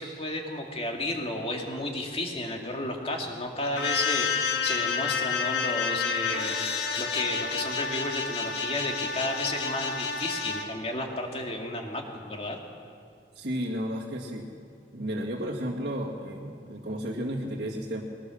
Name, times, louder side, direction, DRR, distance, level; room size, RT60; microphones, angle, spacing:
voice 1, 0.0-6.6 7.0-12.6, left 1 dB, 35° left, 1 dB, 2.4 m, -32 dB
sound 1, 3.8-10.6, left 6 dB, 65° left, 1.9 m, -29 dB
voice 2, 13.3-14.5 14.9-18.0, equal, 60° right, -6 dB, 2.2 m, -33 dB
21.5 x 19.5 x 6.5 m, 2.3 s
head